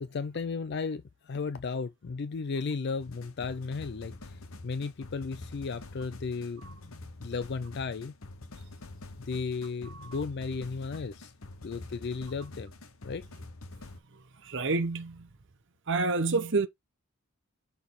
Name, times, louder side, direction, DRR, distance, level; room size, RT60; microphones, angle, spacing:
voice 1, 0.0-6.9 7.2-8.1 9.2-11.3 11.6-12.7 13.0-13.2, left 4 dB, 50° left, 0.4 m, -35 dB
sound 1, 3.0-14.0, left 2 dB, 70° left, 1.1 m, -46 dB
voice 2, 14.4-15.3 15.9-16.7, right 3 dB, 55° right, 0.9 m, -28 dB
6.2 x 3.4 x 4.7 m
head